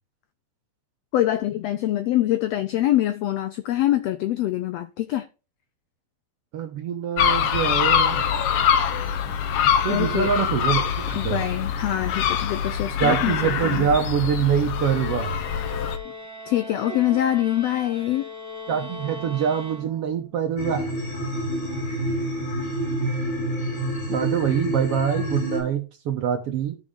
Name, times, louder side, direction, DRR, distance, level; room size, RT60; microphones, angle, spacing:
voice 1, 1.1-5.3 9.9-10.3 11.2-13.9 16.5-18.2, left 13 dB, 85° left, 1.4 m, -24 dB
voice 2, 6.5-8.3 9.8-11.5 13.0-15.4 18.7-20.9 24.1-26.8, right 8 dB, 65° right, 1.6 m, -25 dB
sound 1, 7.2-16.0, left 8 dB, 65° left, 1.6 m, -24 dB
sound 2, 14.6-20.3, left 2 dB, 5° left, 1.4 m, -39 dB
sound 3, 20.6-25.6, right 1 dB, 45° left, 6.8 m, -28 dB
13.0 x 5.0 x 3.8 m
omnidirectional pair, 3.5 m